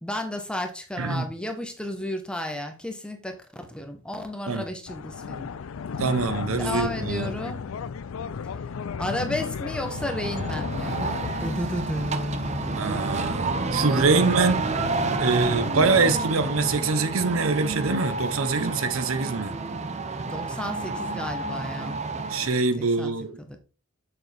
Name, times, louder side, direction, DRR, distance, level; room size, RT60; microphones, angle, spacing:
voice 1, 0.0-5.5 6.6-7.6 9.0-11.0 11.4-13.4 14.0-14.6 20.2-22.0 22.8-23.6, left 1 dB, 5° left, 1.0 m, -33 dB
sound 1, 4.9-16.8, left 6 dB, 75° left, 0.4 m, -35 dB
voice 2, 6.0-7.3 12.7-14.6 15.2-19.5 22.3-23.3, right 4 dB, 75° right, 0.9 m, -24 dB
sound 2, 9.8-22.6, right 3 dB, 30° right, 0.7 m, -30 dB
7.2 x 6.5 x 3.4 m
head